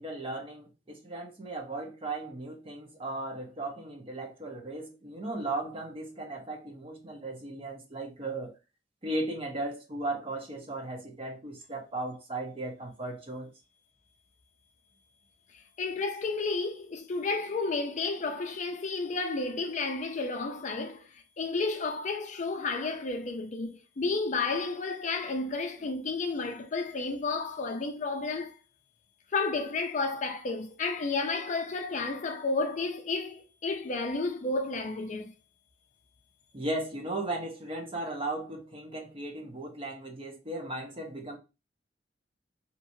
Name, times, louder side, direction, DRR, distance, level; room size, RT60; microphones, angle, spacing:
voice 1, 0.0-8.5 9.0-13.5 36.5-41.4, right 2 dB, 30° right, 0.9 m, -36 dB
voice 2, 15.5-28.6 29.3-35.3, left 3 dB, 45° left, 0.4 m, -32 dB
3.0 x 2.8 x 2.6 m
head